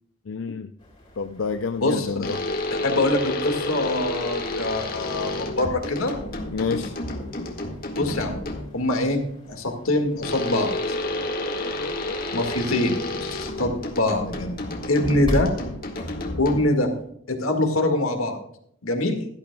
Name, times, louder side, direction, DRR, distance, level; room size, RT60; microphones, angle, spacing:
voice 1, 0.3-0.7 1.2-2.5 6.5-6.9, left 5 dB, 65° left, 8 dB, 0.5 m, -28 dB
sound 1, 0.8-17.0, equal, 25° left, 3.8 m, -41 dB
voice 2, 1.8-2.1 2.8-6.2 8.0-8.4 8.7-9.2 9.5-10.8 12.3-14.6 14.9-15.5 16.4-16.9 17.3-18.4 18.8-19.2, left 1 dB, 85° left, 4 dB, 2.0 m, -24 dB
sound 2, 2.2-8.8 10.2-16.9, left 2 dB, 45° left, 1.7 m, -30 dB
17.0 x 12.5 x 2.3 m, 0.70 s
head